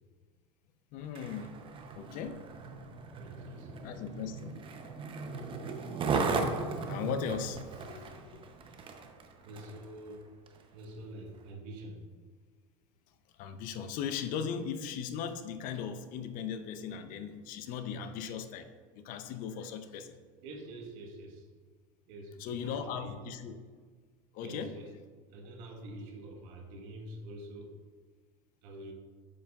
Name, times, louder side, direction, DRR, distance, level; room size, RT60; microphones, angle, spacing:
voice 1, 0.9-1.6 1.9-2.5 3.5-5.0 6.2-8.5 13.3-20.2 22.4-23.5 24.3-24.8, left 7 dB, 50° left, 10 dB, 0.6 m, -39 dB
Skateboard, 1.0-9.9 10.5-10.6, right 4 dB, 30° right, 0.7 m, -37 dB
voice 2, 3.2-3.7 9.4-10.3 10.7-12.0 20.4-21.5 22.0-23.2 24.4-24.9 25.3-27.8 28.6-28.9, right 1 dB, 70° right, 2 dB, 1.3 m, -46 dB
7.2 x 7.1 x 2.4 m, 1.5 s
supercardioid pair, 115°, 17 cm